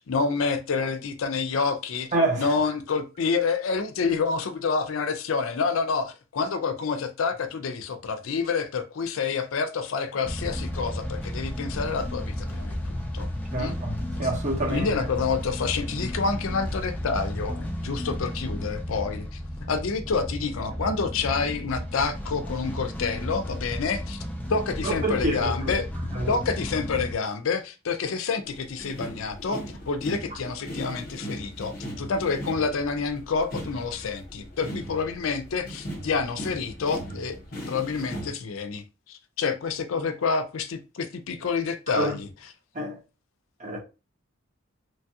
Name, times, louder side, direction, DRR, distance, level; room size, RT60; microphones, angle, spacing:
voice 1, 0.1-2.1 2.4-13.3 13.6-13.8 14.7-19.4 19.7-24.2 24.5-25.9 26.3-37.4 37.7-42.3, left 5 dB, 75° left, 0.4 m, -28 dB
voice 2, 2.1-2.5 13.5-14.9 24.8-25.8 26.1-26.4 41.9-42.2 42.7-43.0 43.6-43.8, right 1 dB, 35° right, 0.8 m, -27 dB
sound 1, 10.2-27.1, equal, 10° left, 0.4 m, -33 dB
sound 2, 28.4-38.3, equal, 45° left, 0.9 m, -38 dB
3.2 x 2.3 x 2.7 m
head